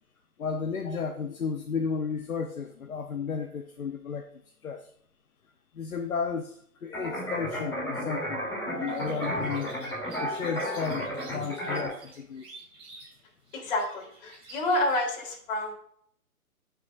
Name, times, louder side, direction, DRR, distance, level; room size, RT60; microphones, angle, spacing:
voice 1, 0.4-4.2 4.6-4.9 5.7-9.7 10.2-12.5, left 5 dB, 70° left, 4 dB, 1.1 m, -33 dB
sound 1, 6.9-11.9, equal, 10° left, 3.0 m, -33 dB
sound 2, 8.8-15.0, right 2 dB, 10° right, 2.5 m, -50 dB
voice 2, 13.5-15.7, left 1 dB, 35° left, -1 dB, 3.5 m, -29 dB
15.0 x 6.5 x 2.6 m, 0.66 s
figure-of-eight pair, 140°, 44 cm